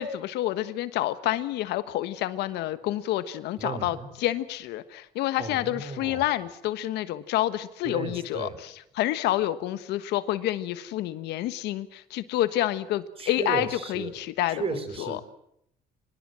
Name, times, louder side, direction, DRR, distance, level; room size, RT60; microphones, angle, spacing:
voice 1, 0.0-15.2, left 14 dB, 85° left, 13 dB, 1.4 m, -28 dB
voice 2, 3.6-4.1 5.4-6.2 7.8-8.6 13.2-14.1 14.5-15.2, right 4 dB, 35° right, 11 dB, 4.2 m, -34 dB
24.0 x 20.5 x 7.6 m, 0.75 s
cardioid pair, 110°, 17 cm